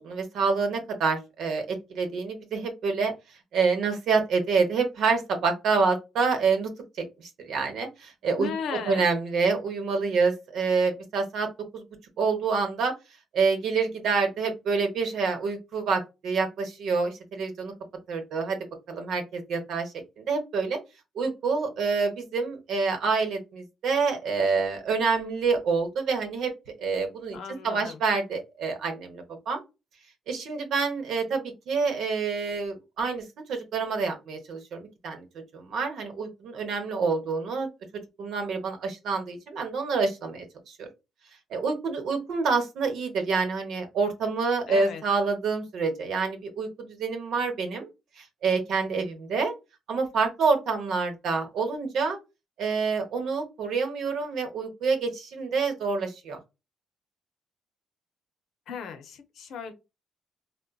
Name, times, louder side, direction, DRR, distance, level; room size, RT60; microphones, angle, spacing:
voice 1, 0.0-3.1 3.5-6.7 7.2-8.5 8.8-11.5 11.7-11.8 12.2-12.9 13.3-17.7 18.1-18.6 18.9-20.8 21.1-26.5 26.8-27.4 27.6-29.6 30.3-33.2 33.5-35.2 35.5-37.7 38.2-40.9 41.5-47.9 48.2-49.5 49.9-52.2 52.6-56.4, right 4 dB, 75° right, 0.9 m, -27 dB
voice 2, 8.4-9.0 27.3-28.0 44.7-45.0 58.7-59.7, left 6 dB, 75° left, 0.6 m, -36 dB
3.8 x 2.1 x 2.2 m
cardioid pair, 90°, 0 cm